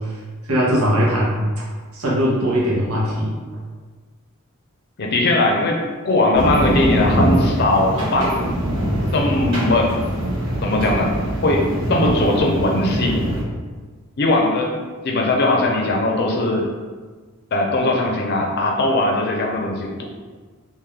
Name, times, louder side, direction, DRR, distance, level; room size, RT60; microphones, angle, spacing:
voice 1, 0.4-1.6 1.9-3.3, equal, 80° right, -5 dB, 1.0 m, -20 dB
voice 2, 5.0-8.6 9.1-9.9 10.6-11.1 11.4-13.2 14.2-14.7 15.0-16.7 17.5-20.0, left 2 dB, 50° left, 1 dB, 0.5 m, -19 dB
sound 1, 6.3-13.4, right 1 dB, 60° right, 1.4 m, -22 dB
3.7 x 2.6 x 3.2 m, 1.4 s
head